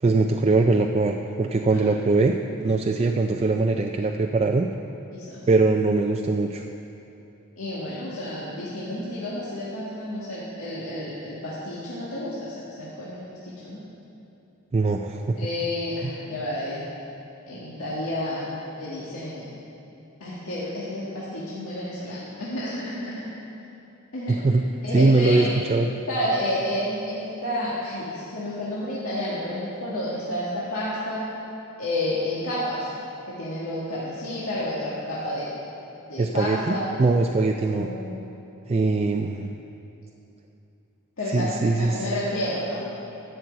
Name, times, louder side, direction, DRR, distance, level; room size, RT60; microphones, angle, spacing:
voice 1, 0.0-2.4 2.6-4.7 5.5-6.6 14.7-15.4 16.0-16.1 24.3-24.6 24.9-25.9 36.2-37.9 38.7-39.5 41.3-42.1, right 3 dB, 30° right, 3 dB, 0.4 m, -22 dB
voice 2, 7.6-13.8 15.4-16.9 17.5-18.5 18.8-19.5 20.2-23.2 24.1-24.4 24.8-25.6 26.1-31.3 31.8-32.9 33.3-35.5 36.1-37.0 37.6-38.0 41.2-42.9, left 1 dB, 80° left, -8 dB, 1.8 m, -30 dB
12.0 x 6.2 x 8.0 m, 2.8 s
head